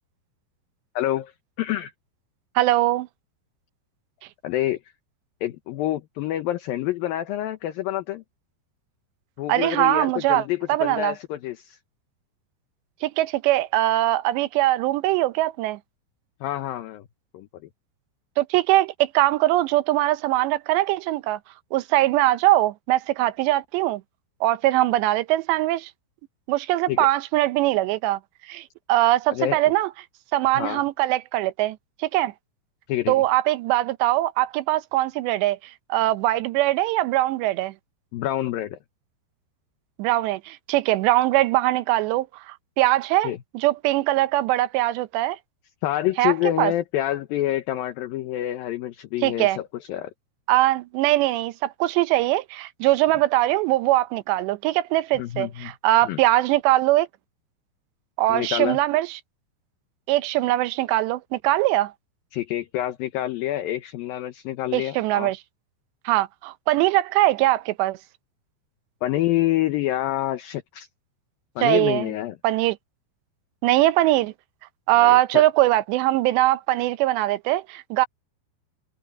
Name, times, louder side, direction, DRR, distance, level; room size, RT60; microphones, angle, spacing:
voice 1, 1.0-1.3 1.6-1.9 4.4-4.8 5.4-8.2 9.4-11.8 16.4-17.1 17.3-17.5 26.9-27.1 29.3-29.6 30.6-30.8 32.9-33.2 38.1-38.8 43.2-43.4 45.8-50.1 55.2-55.7 56.1-56.2 58.3-58.8 62.3-65.3 69.0-70.9 71.6-72.4 75.0-75.4, left 14 dB, 70° left, 2.5 m, -27 dB
voice 2, 2.6-3.1 9.5-11.1 13.0-15.8 18.4-21.4 21.7-24.0 24.4-25.9 26.5-28.2 28.5-29.9 30.3-32.3 33.1-35.6 35.9-37.7 40.0-45.4 46.2-46.7 49.2-49.6 50.5-57.1 58.2-59.2 60.1-61.9 64.7-65.4 66.1-68.0 71.6-72.1 72.4-72.8 73.6-74.3 74.9-78.1, right 16 dB, 85° right, 3.0 m, -21 dB
omnidirectional pair, 5.0 m